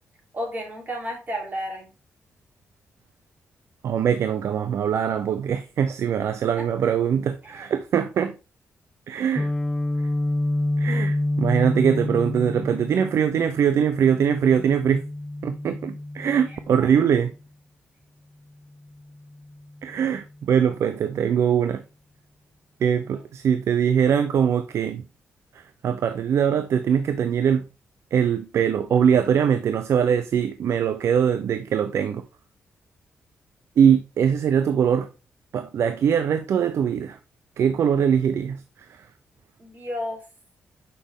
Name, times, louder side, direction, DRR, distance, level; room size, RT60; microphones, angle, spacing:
voice 1, 0.3-1.9 7.4-7.7 16.5-17.0 39.6-40.2, equal, 40° right, 3.6 m, -33 dB
voice 2, 3.8-8.3 9.1-9.5 10.8-15.0 15.4-17.3 19.8-21.8 22.8-25.0 25.8-27.7 28.1-32.2 33.8-35.1 35.5-37.2 37.6-38.6, right 8 dB, 70° right, 0.5 m, -22 dB
Guitar, 9.4-17.2, left 1 dB, 10° left, 0.3 m, -28 dB
6.8 x 5.1 x 3.6 m
cardioid pair, 85°, 5 cm